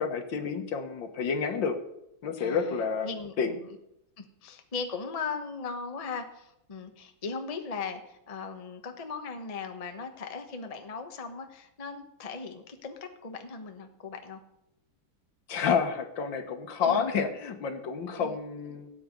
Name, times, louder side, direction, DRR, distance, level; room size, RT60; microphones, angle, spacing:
voice 1, 0.0-1.8 2.2-3.1 3.4-3.5 15.5-18.9, left 6 dB, 65° left, 7 dB, 1.9 m, -29 dB
voice 2, 2.4-3.8 4.2-14.4 16.8-17.0 18.2-18.4 18.7-18.8, left 5 dB, 25° left, 6 dB, 0.9 m, -38 dB
17.5 x 8.6 x 5.3 m, 0.84 s
omnidirectional pair, 2.2 m